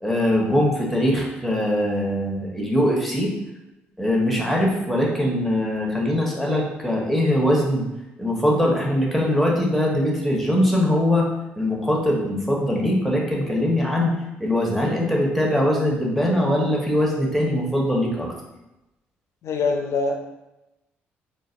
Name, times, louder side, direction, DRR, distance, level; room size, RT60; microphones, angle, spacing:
voice 1, 0.0-3.3 4.0-7.9 8.2-11.3 11.6-14.1 14.4-18.3, left 1 dB, ahead, -2 dB, 1.0 m, -21 dB
voice 2, 19.4-20.2, left 4 dB, 55° left, 4 dB, 0.5 m, -23 dB
3.8 x 2.2 x 2.5 m, 0.96 s
hypercardioid pair, 45°, 6 cm